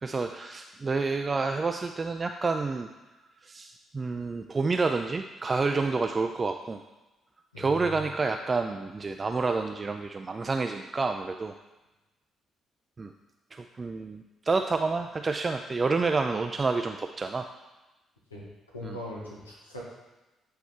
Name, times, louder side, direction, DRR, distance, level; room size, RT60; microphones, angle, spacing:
voice 1, 0.0-2.9 3.4-6.8 7.6-11.5 13.0-13.1 13.5-17.5 18.8-19.0, right 4 dB, 30° right, 5 dB, 0.3 m, -29 dB
voice 2, 7.5-8.0 18.3-19.8, left 1 dB, 85° left, -5 dB, 1.1 m, -41 dB
8.2 x 4.3 x 3.4 m, 1.1 s
figure-of-eight pair, 40°, 0 cm